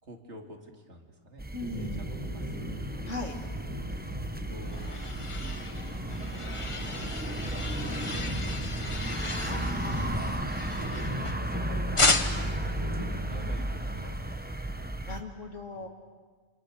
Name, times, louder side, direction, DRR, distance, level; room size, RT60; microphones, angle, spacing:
voice 1, 0.0-1.4 1.8-2.8 3.8-5.9 6.8-8.5 8.7-9.7 10.5-11.0 11.3-12.2 12.5-15.1 15.7-15.9, right 1 dB, 50° right, 2 dB, 3.0 m, -48 dB
sound 1, 1.4-15.2, right 1 dB, 10° right, 0.9 m, -34 dB
voice 2, 1.5-2.0 3.1-3.4 9.5-10.4 15.1-15.9, left 3 dB, 60° left, 2 dB, 2.4 m, -38 dB
sound 2, 1.6-13.5, right 1 dB, 25° right, 3.7 m, -40 dB
sound 3, 4.2-11.5 12.0-12.6, left 3 dB, 25° left, 1.1 m, -33 dB
29.0 x 26.5 x 6.5 m, 1.5 s
omnidirectional pair, 1.5 m